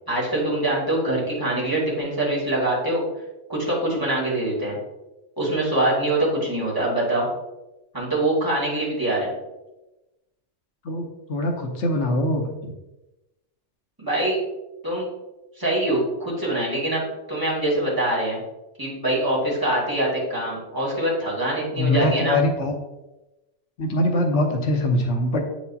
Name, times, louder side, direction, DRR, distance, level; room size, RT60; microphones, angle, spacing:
voice 1, 0.1-3.0 3.5-4.8 5.4-7.3 7.9-9.3 14.0-14.4 14.8-15.1 15.6-17.0 17.3-18.4 18.8-22.4, right 1 dB, 20° right, -7 dB, 2.1 m, -24 dB
voice 2, 10.8-12.5 21.8-22.7 23.8-25.4, left 1 dB, 80° left, 3 dB, 1.1 m, -23 dB
8.0 x 4.8 x 2.7 m, 1.0 s
omnidirectional pair, 1.2 m